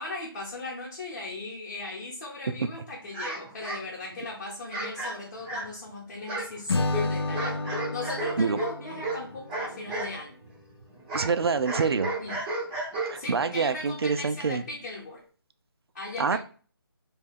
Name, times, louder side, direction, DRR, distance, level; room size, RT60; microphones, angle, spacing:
voice 1, 0.0-7.6 7.9-10.4 12.2-12.4 13.2-15.2 15.9-16.4, left 2 dB, 35° left, 0.8 m, -38 dB
sound 1, 3.1-4.2 4.7-5.9 6.2-10.2 10.4-13.4, right 1 dB, 10° right, 0.4 m, -34 dB
Acoustic guitar / Strum, 6.7-10.0, left 2 dB, 85° left, 0.5 m, -31 dB
voice 2, 11.1-12.1 13.0-14.6 16.2-16.4, right 5 dB, 80° right, 0.4 m, -26 dB
2.7 x 2.3 x 3.5 m
figure-of-eight pair, 160°, 13 cm